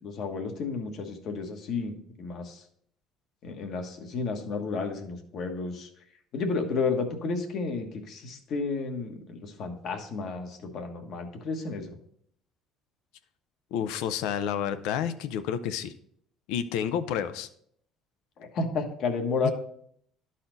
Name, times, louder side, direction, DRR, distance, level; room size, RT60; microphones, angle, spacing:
voice 1, 0.0-2.6 3.4-5.9 6.3-12.0 18.4-19.5, left 4 dB, 60° left, 5 dB, 1.3 m, -32 dB
voice 2, 13.7-15.9 16.5-17.5 19.4-19.5, left 9 dB, 85° left, 11 dB, 0.5 m, -30 dB
12.0 x 4.2 x 4.0 m, 0.67 s
cardioid pair, 110°, 0 cm